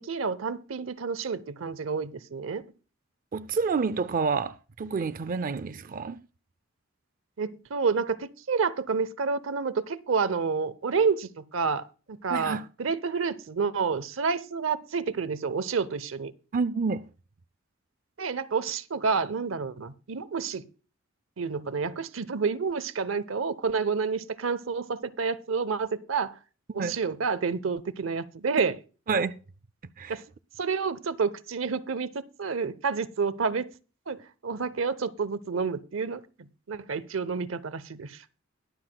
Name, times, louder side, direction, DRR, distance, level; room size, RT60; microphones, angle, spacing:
voice 1, 0.0-2.6 7.4-16.3 18.2-20.6 21.4-26.3 26.7-28.7 30.1-30.2 30.6-33.7 34.1-36.2 36.7-38.2, right 5 dB, 90° right, 0.7 m, -29 dB
voice 2, 3.3-6.2 12.3-12.7 16.5-17.1 26.8-27.0 29.1-29.4 30.0-30.2, right 5 dB, 45° right, 0.4 m, -28 dB
21.5 x 7.7 x 2.2 m
head